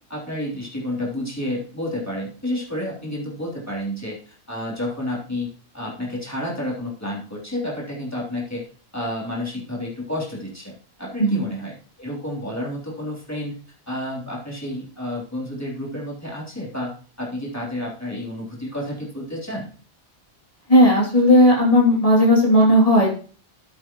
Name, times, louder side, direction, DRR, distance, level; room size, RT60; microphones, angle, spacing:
voice 1, 0.1-5.5 5.7-8.7 8.9-13.5 13.9-19.7, left 1 dB, 15° left, -5 dB, 3.5 m, -30 dB
voice 2, 20.7-23.1, equal, 30° left, -5 dB, 2.8 m, -15 dB
13.0 x 7.9 x 3.1 m, 0.41 s
omnidirectional pair, 1.1 m